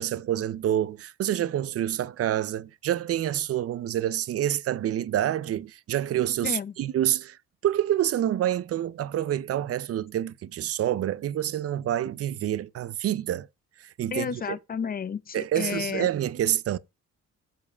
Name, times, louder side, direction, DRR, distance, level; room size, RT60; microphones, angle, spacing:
voice 1, 0.0-13.5 13.8-14.4 15.3-16.8, right 11 dB, 50° right, 0.5 m, -27 dB
voice 2, 6.4-6.7 14.1-16.1, left 7 dB, 30° left, 0.6 m, -32 dB
7.3 x 5.0 x 5.3 m
cardioid pair, 90°, 30 cm